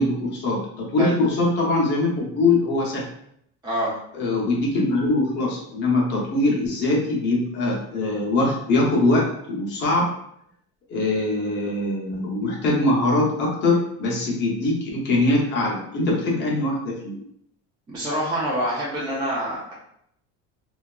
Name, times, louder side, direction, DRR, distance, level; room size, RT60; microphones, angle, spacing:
voice 1, 0.0-3.0 4.1-10.1 10.9-17.2, left 2 dB, 35° left, -3 dB, 0.6 m, -22 dB
voice 2, 3.6-4.0 17.9-19.7, right 1 dB, 15° right, -7 dB, 0.3 m, -26 dB
2.7 x 2.3 x 2.2 m, 0.72 s
cardioid pair, 170°, 31 cm